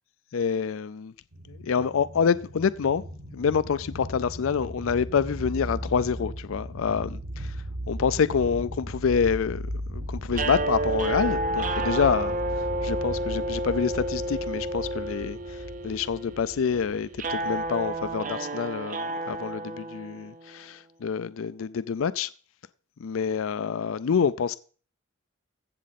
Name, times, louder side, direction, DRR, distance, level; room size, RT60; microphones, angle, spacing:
voice 1, 0.3-1.1 1.5-3.0 3.3-22.3 23.0-24.6, left 6 dB, 80° left, 0.4 m, -27 dB
sound 1, 1.3-18.3, equal, 65° right, 1.6 m, -37 dB
sound 2, 10.3-20.5, right 1 dB, 40° right, 0.6 m, -31 dB
15.0 x 7.4 x 4.1 m
head